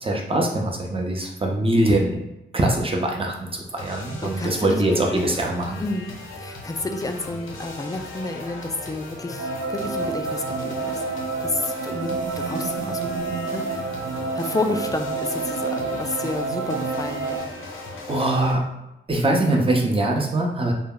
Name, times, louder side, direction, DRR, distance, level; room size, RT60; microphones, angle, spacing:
voice 1, 0.0-2.2 2.5-5.8 18.1-18.6 19.1-20.7, right 1 dB, 25° right, 0 dB, 0.6 m, -22 dB
sound 1, 3.8-18.5, left 2 dB, 70° left, 0.6 m, -38 dB
voice 2, 4.2-4.8 5.8-12.1 12.4-13.1 13.5-13.9 14.3-17.4, left 2 dB, 15° left, 5 dB, 0.3 m, -30 dB
sound 2, 9.4-17.4, right 4 dB, 75° right, 0.4 m, -29 dB
2.2 x 2.1 x 3.6 m, 0.92 s
cardioid pair, 55°, 21 cm